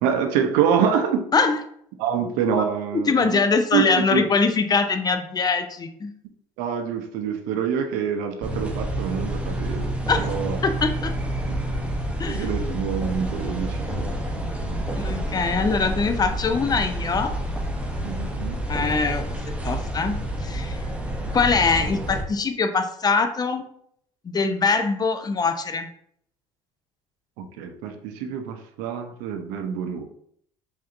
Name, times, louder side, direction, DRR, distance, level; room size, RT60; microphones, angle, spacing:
voice 1, 0.0-1.3 2.0-3.4 3.7-4.2 6.6-10.6 11.5-11.6 12.3-14.1 14.6-14.7 18.0-18.6 21.2-21.3 27.4-30.1, right 7 dB, 70° right, 6 dB, 0.6 m, -26 dB
voice 2, 2.9-6.1 10.1-10.3 10.6-11.1 12.2-12.8 15.0-17.3 18.7-19.4 19.6-20.8 21.3-23.6 24.2-25.9, left 4 dB, 25° left, 8 dB, 0.6 m, -23 dB
sound 1, 8.4-22.2, right 1 dB, 10° right, 0.8 m, -28 dB
4.9 x 2.7 x 2.5 m, 0.67 s
hypercardioid pair, 65°, 14 cm